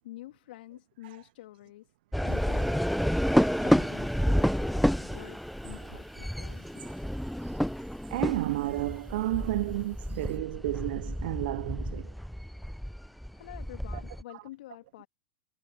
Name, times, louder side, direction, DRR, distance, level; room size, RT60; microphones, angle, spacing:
voice 1, 0.0-1.9 2.2-3.2 3.5-6.9 13.3-15.1, left 16 dB, 65° left, 2.6 m, -48 dB
sound 1, 2.1-14.2, equal, ahead, 0.5 m, -30 dB
sound 2, 2.3-10.4, right 11 dB, 35° right, 6.2 m, -60 dB
voice 2, 8.1-12.1, right 17 dB, 60° right, 0.4 m, -31 dB
hypercardioid pair, 95°, 6 cm